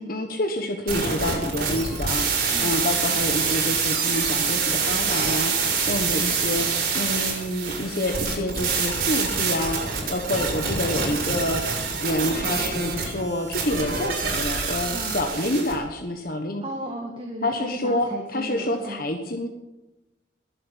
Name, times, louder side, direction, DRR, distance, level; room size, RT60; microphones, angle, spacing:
voice 1, 0.0-6.7 6.9-11.6 12.0-16.6 17.4-19.5, left 1 dB, 50° left, 4 dB, 1.3 m, -28 dB
sound 1, 0.9-15.7, right 5 dB, 50° right, 5.7 m, -26 dB
voice 2, 16.6-19.0, right 1 dB, 25° right, 1 dB, 1.9 m, -35 dB
21.0 x 7.7 x 8.2 m, 1.0 s
head